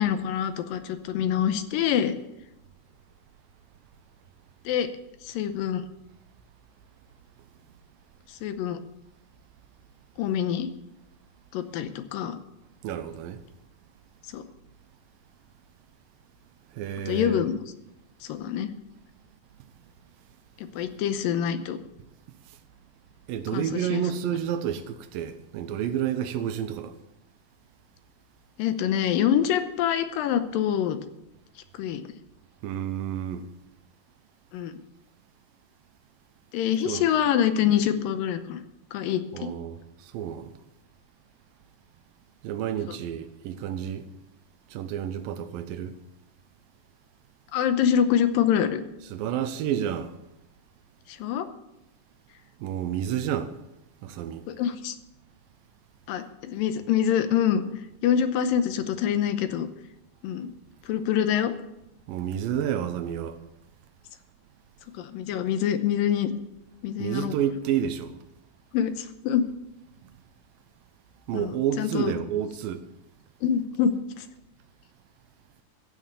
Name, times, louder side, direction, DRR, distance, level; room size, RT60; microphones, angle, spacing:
voice 1, 0.0-2.1 4.7-4.9 5.2-5.9 8.4-8.8 10.2-10.7 11.5-12.4 14.3-14.4 17.1-17.6 18.2-18.7 20.6-21.8 23.5-24.0 28.6-31.0 31.7-32.0 34.5-34.8 36.5-38.6 38.9-39.5 42.9-43.0 47.5-48.8 51.1-51.5 54.5-55.0 56.1-57.6 58.0-59.7 60.2-60.5 60.9-61.5 64.9-66.3 66.8-67.3 68.7-69.5 71.3-71.5 71.8-72.1 73.4-74.3, left 9 dB, 75° left, 2.4 m, -25 dB
voice 2, 12.8-13.4 16.7-17.4 23.3-27.0 32.6-33.5 36.9-37.0 39.3-40.5 42.4-44.1 44.7-45.9 49.1-50.1 52.6-53.5 54.0-54.4 62.1-63.4 67.0-68.2 70.0-70.1 71.3-72.8, right 9 dB, 75° right, 2.5 m, -30 dB
15.0 x 6.4 x 8.1 m
omnidirectional pair, 4.4 m